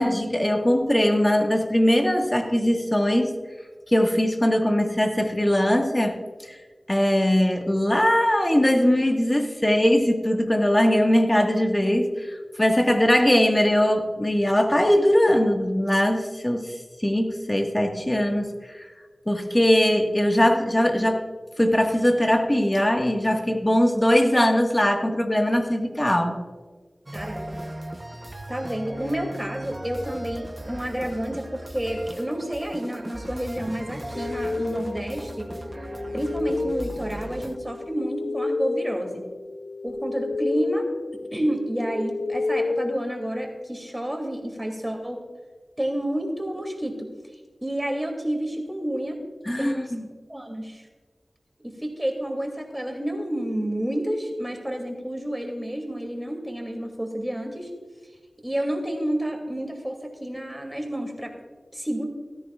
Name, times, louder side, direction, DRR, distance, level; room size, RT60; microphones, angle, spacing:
voice 1, 0.0-3.3 3.9-6.2 6.5-6.6 6.9-16.7 17.0-18.9 19.3-21.2 21.6-26.4 49.4-50.1, equal, 20° left, 3 dB, 1.6 m, -21 dB
voice 2, 27.1-27.6 28.5-35.5 36.1-39.2 39.8-40.9 41.3-45.2 45.8-47.1 47.6-49.2 49.6-49.9 50.3-50.9 51.6-57.7 58.4-61.3 61.7-62.0, right 1 dB, 10° right, 2 dB, 2.6 m, -30 dB
sound 1, 27.1-37.6, right 1 dB, 30° right, 0.8 m, -38 dB
sound 2, 34.2-43.8, left 3 dB, 65° left, 0.3 m, -31 dB
16.0 x 13.5 x 2.4 m, 1.4 s
wide cardioid pair, 45°, 0 cm